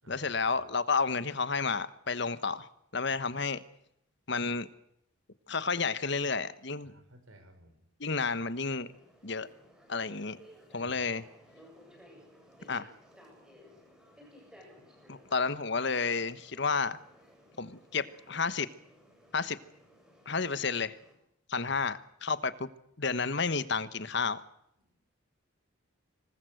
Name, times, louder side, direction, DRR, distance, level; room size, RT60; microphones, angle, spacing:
voice 1, 0.1-3.6 4.3-4.7 5.5-6.9 8.0-8.9 9.2-9.5 9.9-10.4 10.7-11.2 12.7-12.9 15.1-17.0 17.6-18.7 19.3-19.6 20.3-21.0 21.5-22.7 23.0-24.4, left 4 dB, 55° left, 15 dB, 1.2 m, -31 dB
voice 2, 6.8-7.8 10.8-11.0 14.8-14.9 21.6-21.8 24.8-24.9, right 1 dB, 85° right, 8 dB, 5.9 m, -56 dB
sound 1, 8.8-21.1, equal, 5° right, 7.7 m, -57 dB
26.0 x 20.0 x 7.9 m, 0.76 s
head